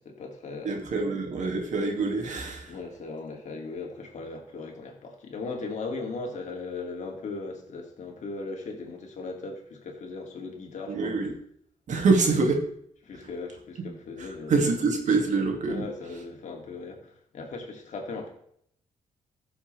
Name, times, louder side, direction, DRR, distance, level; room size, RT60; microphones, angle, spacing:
voice 1, 0.0-0.8 2.7-11.1 13.0-14.6 15.7-18.3, left 3 dB, 60° left, 1 dB, 2.7 m, -38 dB
voice 2, 0.6-2.8 10.9-11.3 11.9-12.7 13.1-13.3 14.2-15.8, right 4 dB, 65° right, 2 dB, 2.5 m, -25 dB
14.5 x 7.3 x 3.4 m, 0.68 s
cardioid pair, 90°, 14 cm